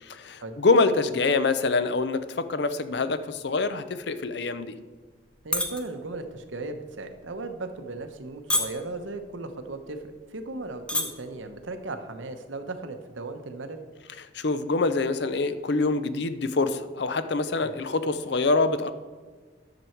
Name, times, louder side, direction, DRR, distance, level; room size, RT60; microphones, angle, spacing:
voice 1, 0.0-4.7 14.3-18.9, left 3 dB, 60° left, 12 dB, 0.6 m, -25 dB
sound 1, 5.3-5.8 6.2-6.5 7.1-7.3 8.0-8.2 8.5-9.0 9.7-9.8 10.1-10.2 10.7-11.0 11.4-11.6, left 1 dB, 5° left, 0.8 m, -26 dB
voice 2, 5.4-13.8 17.6-17.9, right 2 dB, 80° right, 7 dB, 0.9 m, -37 dB
10.5 x 6.9 x 4.5 m, 1.4 s
head